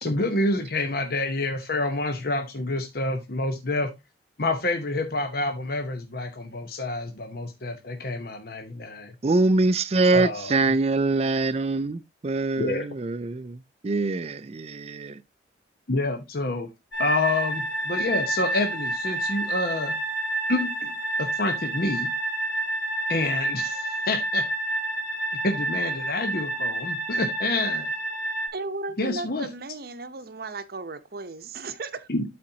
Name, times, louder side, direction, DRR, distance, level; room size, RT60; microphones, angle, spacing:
voice 1, 0.0-3.9 4.4-9.1 10.1-10.5 12.6-12.8 15.9-16.7 17.0-19.9 20.5-22.1 23.1-24.4 25.4-27.9 29.0-29.5 32.1-32.2, left 2 dB, 55° left, 1.0 m, -28 dB
voice 2, 9.2-15.2, right 3 dB, 35° right, 0.4 m, -24 dB
sound 1, 16.9-28.5, right 2 dB, 75° left, 2.5 m, -29 dB
voice 3, 28.5-32.1, right 3 dB, 55° right, 0.8 m, -35 dB
12.5 x 4.3 x 2.8 m
head